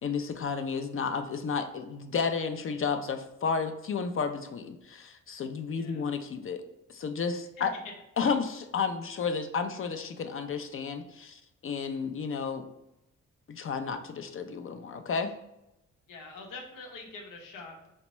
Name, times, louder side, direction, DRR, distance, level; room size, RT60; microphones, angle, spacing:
voice 1, 0.0-6.6 6.9-7.7 8.2-12.7 13.5-15.3, left 5 dB, 45° left, 7 dB, 0.4 m, -32 dB
voice 2, 5.7-6.1 7.6-7.7 16.1-17.9, left 3 dB, 85° left, 0 dB, 0.8 m, -45 dB
4.2 x 2.2 x 3.0 m, 0.86 s
cardioid pair, 60°, 31 cm